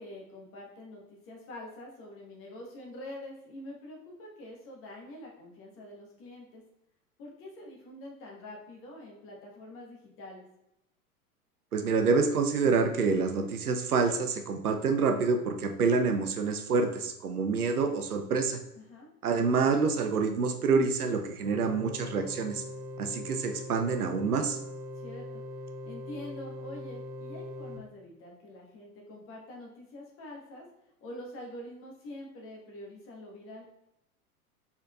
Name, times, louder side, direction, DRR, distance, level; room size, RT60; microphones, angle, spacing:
voice 1, 0.0-6.6 7.2-10.4 18.8-19.1 24.9-25.4 25.8-30.7 31.0-33.7, left 1 dB, 30° left, -1 dB, 1.3 m, -45 dB
voice 2, 11.7-18.6 19.2-22.6 23.0-24.6, right 4 dB, 75° right, 5 dB, 0.7 m, -27 dB
sound 1, 21.4-27.8, left 1 dB, 25° right, 0.6 m, -41 dB
4.3 x 4.1 x 2.3 m, 0.86 s
figure-of-eight pair, 95°, 45 cm